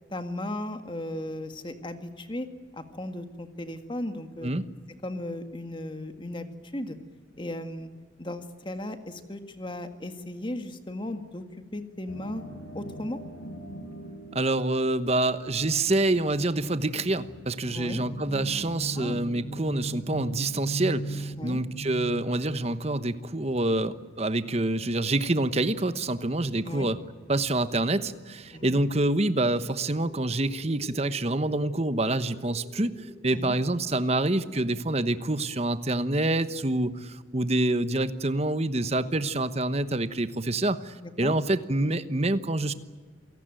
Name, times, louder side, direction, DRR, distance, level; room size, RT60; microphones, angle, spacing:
voice 1, 0.1-2.5 2.7-4.5 5.0-7.0 7.4-7.9 8.2-11.4 11.7-12.4 12.7-13.2 17.7-18.0 19.0-19.2 21.3-21.6 26.7-26.9 28.5-28.8 33.3-33.6 41.0-41.3, left 1 dB, 25° left, 8 dB, 1.8 m, -36 dB
sound 1, 12.1-29.1, right 2 dB, 85° left, 3.7 m, -41 dB
voice 2, 14.3-27.0 27.3-32.9 33.2-42.7, right 2 dB, 35° right, 12 dB, 1.1 m, -27 dB
sound 2, 28.5-33.6, equal, 5° left, 6.4 m, -51 dB
28.0 x 18.0 x 9.1 m, 1.5 s
head